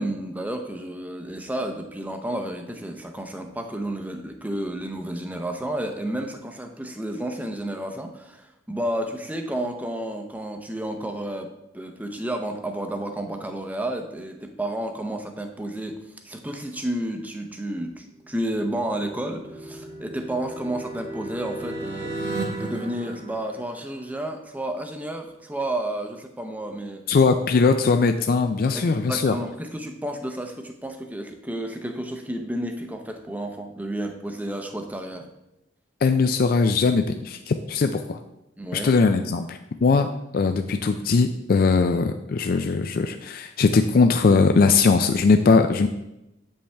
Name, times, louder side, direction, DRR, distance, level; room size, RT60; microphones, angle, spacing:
voice 1, 0.0-27.0 28.7-35.3 38.6-38.9, right 1 dB, 10° right, 4 dB, 0.6 m, -31 dB
sound 1, 18.3-24.1, right 2 dB, 50° right, 1.5 m, -35 dB
voice 2, 27.1-29.3 36.0-38.2 38.7-40.1 40.3-45.9, left 4 dB, 50° left, 6 dB, 0.4 m, -20 dB
8.4 x 5.4 x 3.4 m, 0.88 s
head